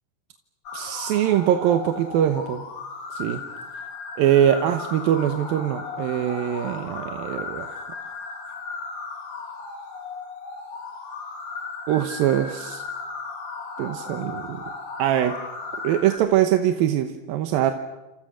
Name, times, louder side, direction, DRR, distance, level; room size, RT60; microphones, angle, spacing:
sound 1, 0.7-16.2, left 4 dB, 60° left, 4.5 m, -36 dB
voice 1, 0.7-2.6 3.1-3.4 4.2-7.8 11.9-12.8 13.8-14.6 15.0-15.3 15.8-17.7, right 11 dB, 85° right, 7 dB, 2.9 m, -22 dB
29.0 x 28.0 x 6.4 m, 1.0 s
omnidirectional pair, 4.1 m